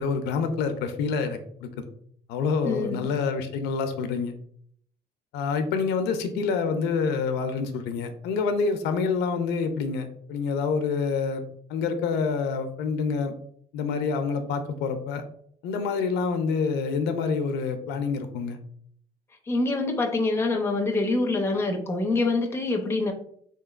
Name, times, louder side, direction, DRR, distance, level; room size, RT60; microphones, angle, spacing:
voice 1, 0.0-1.9 2.3-4.3 5.3-11.4 11.7-13.3 13.7-15.2 15.6-18.6, left 5 dB, 85° left, 8 dB, 0.5 m, -27 dB
voice 2, 2.6-3.1 19.5-23.1, left 2 dB, 15° left, 3 dB, 0.5 m, -25 dB
3.8 x 2.9 x 2.4 m, 0.64 s
cardioid pair, 110°, 17 cm